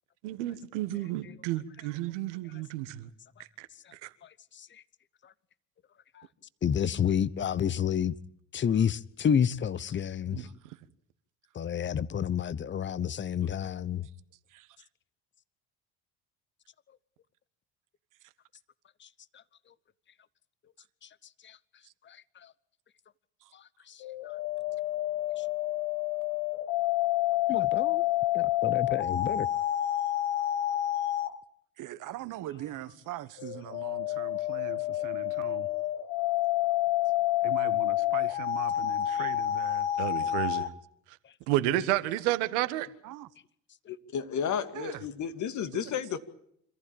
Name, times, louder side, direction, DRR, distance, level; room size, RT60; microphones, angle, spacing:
voice 1, 0.2-3.1 3.4-4.1 10.3-10.5 40.0-40.7 41.1-41.2 41.5-42.9, right 14 dB, 80° right, 1.5 m, -31 dB
voice 2, 6.6-8.2 8.5-10.5 11.5-14.1 21.4-21.6 22.1-22.2 23.9-24.0 24.2-24.3 25.4-25.5 27.5-28.0 28.3-29.5, left 8 dB, 30° left, 1.0 m, -29 dB
voice 3, 10.4-10.8 13.6-13.7 14.5-14.9 18.2-18.3 21.8-21.9 23.4-23.5 31.8-35.7 37.4-39.9 43.0-43.3 44.7-45.0 45.7-45.9, right 14 dB, 60° right, 1.4 m, -41 dB
sound 1, 24.0-31.4 33.4-40.7, left 14 dB, 70° left, 1.4 m, -29 dB
voice 4, 43.9-46.2, left 7 dB, 55° left, 2.3 m, -32 dB
26.5 x 14.5 x 8.8 m
hypercardioid pair, 70°, 35 cm